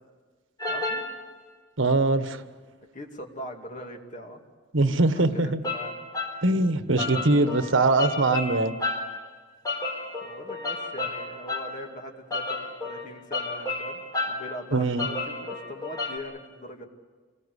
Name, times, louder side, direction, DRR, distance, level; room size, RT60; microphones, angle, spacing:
sound 1, 0.6-1.1 5.6-6.4 7.0-9.2 9.6-11.8 12.3-14.5 15.0-16.2, left 2 dB, 20° left, 3.6 m, -32 dB
voice 1, 0.7-1.1 2.9-4.4 5.3-5.9 10.2-16.8, equal, 40° left, 2 dB, 2.7 m, -41 dB
voice 2, 1.8-2.4 4.7-5.6 6.4-8.7 14.7-15.1, right 2 dB, 90° right, 10 dB, 1.3 m, -22 dB
28.0 x 20.5 x 8.3 m, 1.4 s
head